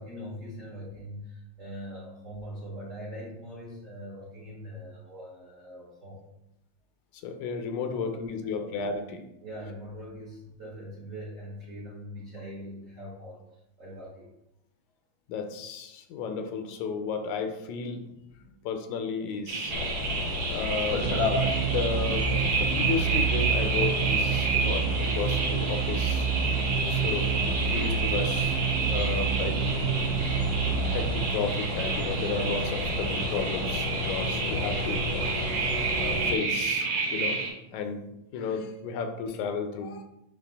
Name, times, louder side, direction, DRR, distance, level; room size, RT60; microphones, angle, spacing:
voice 1, 0.0-6.2 8.6-8.7 9.4-13.4 13.8-14.3, equal, 40° right, -5 dB, 1.3 m, -42 dB
voice 2, 7.2-9.2 15.3-18.1 18.6-19.7 20.5-21.1 21.6-26.3 26.9-27.3 27.6-28.6 28.8-29.9 30.8-37.5 37.7-40.0, left 5 dB, 85° left, 6 dB, 2.2 m, -33 dB
sound 1, 19.5-37.5, right 4 dB, 65° right, 2.9 m, -30 dB
sound 2, 19.7-36.3, left 2 dB, 65° left, 1.3 m, -32 dB
sound 3, 20.9-31.6, right 9 dB, 90° right, 1.3 m, -29 dB
9.8 x 3.3 x 3.5 m, 0.86 s
omnidirectional pair, 3.3 m